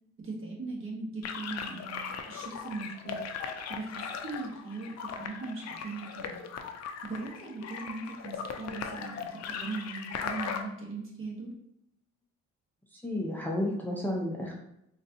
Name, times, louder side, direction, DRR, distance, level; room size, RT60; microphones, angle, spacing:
voice 1, 0.2-3.2 3.7-6.4 7.0-11.5, right 3 dB, 45° right, -1 dB, 1.1 m, -39 dB
sound 1, 1.2-10.6, left 6 dB, 60° left, 0.5 m, -38 dB
voice 2, 12.9-14.5, left 1 dB, 5° left, -2 dB, 0.6 m, -32 dB
3.9 x 2.5 x 2.7 m, 0.79 s
cardioid pair, 90°, 30 cm